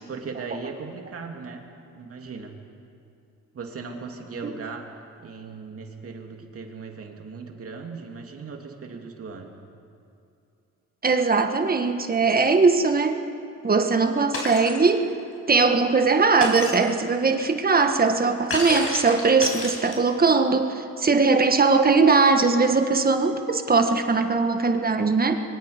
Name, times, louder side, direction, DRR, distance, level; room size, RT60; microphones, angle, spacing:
voice 1, 0.1-1.7 1.9-2.6 3.5-4.9 5.2-9.6, right 4 dB, 50° right, 2 dB, 2.8 m, -38 dB
voice 2, 11.0-13.2 13.6-15.1 15.5-25.3, right 4 dB, 30° right, 6 dB, 1.5 m, -20 dB
Shatter, 14.3-14.8 16.4-16.9 18.5-20.2, left 2 dB, 50° left, 5.5 m, -30 dB
26.0 x 23.0 x 5.2 m, 2.6 s
cardioid pair, 90°, 30 cm